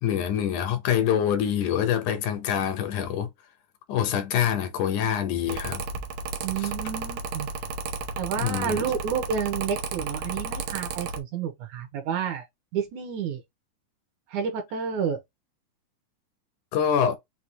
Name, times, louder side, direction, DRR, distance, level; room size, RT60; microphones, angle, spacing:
voice 1, 0.0-3.3 3.9-5.8 6.6-6.7 8.4-8.8 16.7-17.2, left 9 dB, 75° left, 2.2 m, -25 dB
Mechanical fan, 5.5-11.2, right 5 dB, 90° right, 2.3 m, -33 dB
voice 2, 6.4-7.5 8.2-12.4 12.7-13.4 14.3-15.2, right 7 dB, 75° right, 2.3 m, -30 dB
6.1 x 2.4 x 2.7 m
omnidirectional pair, 3.6 m